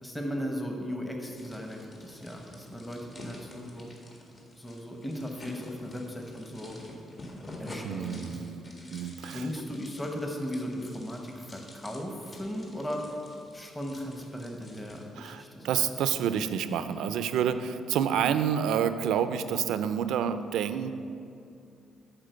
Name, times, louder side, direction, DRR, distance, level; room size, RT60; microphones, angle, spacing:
voice 1, 0.0-3.9 4.6-6.8 7.6-8.4 9.3-13.2 13.5-15.8, equal, 10° left, 2 dB, 1.0 m, -37 dB
sound 1, 1.4-15.0, left 1 dB, 40° left, 1.8 m, -48 dB
voice 2, 7.8-9.5 15.2-20.9, right 8 dB, 85° right, 11 dB, 0.4 m, -29 dB
8.8 x 4.4 x 6.7 m, 2.5 s
cardioid pair, 90°, 0 cm